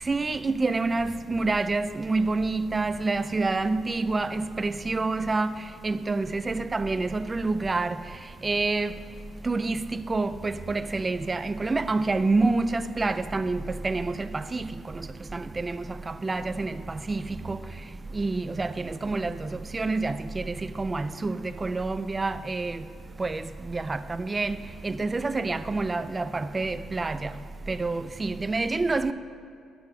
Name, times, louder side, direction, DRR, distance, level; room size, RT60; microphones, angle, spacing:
voice 1, 0.1-5.5 5.8-8.0 8.4-8.9 9.4-15.1 15.3-17.6 18.1-22.8 23.2-27.3 27.7-29.1, right 3 dB, 25° right, 0.3 m, -28 dB
9.3 x 6.2 x 4.7 m
cardioid pair, 90°, 0 cm